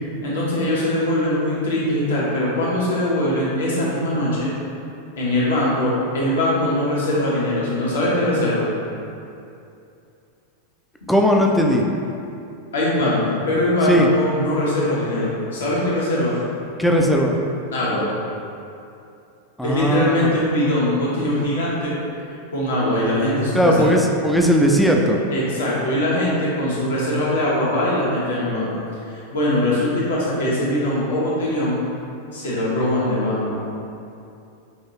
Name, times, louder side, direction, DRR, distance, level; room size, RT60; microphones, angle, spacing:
voice 1, 0.2-4.5 5.2-8.7 12.7-16.4 17.7-18.1 19.6-21.9 22.5-23.8 25.3-28.7 29.1-31.8 32.3-33.6, left 1 dB, 65° left, -6 dB, 1.0 m, -21 dB
voice 2, 11.1-11.8 13.9-14.1 16.8-17.4 19.6-20.2 23.5-25.2, equal, ahead, 0 dB, 0.4 m, -17 dB
5.4 x 2.6 x 2.9 m, 2.6 s
figure-of-eight pair, 90°, 0 cm